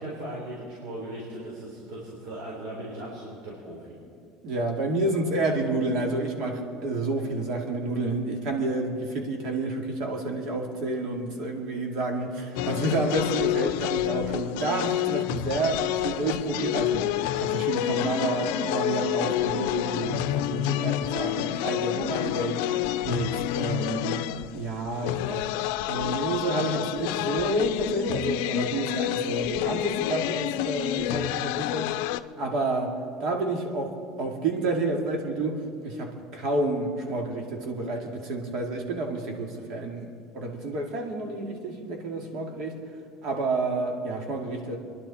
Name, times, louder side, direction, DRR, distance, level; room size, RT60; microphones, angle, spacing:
voice 1, 0.0-3.9, right 1 dB, 75° right, -5 dB, 4.0 m, -38 dB
voice 2, 4.4-22.6 23.0-31.9 32.4-32.9 33.2-42.8 43.2-44.8, right 2 dB, 60° right, 2 dB, 2.5 m, -29 dB
sound 1, 12.6-32.2, left 14 dB, 80° left, 0.5 m, -29 dB
27.0 x 11.0 x 4.3 m, 2.4 s
cardioid pair, 130°, 0 cm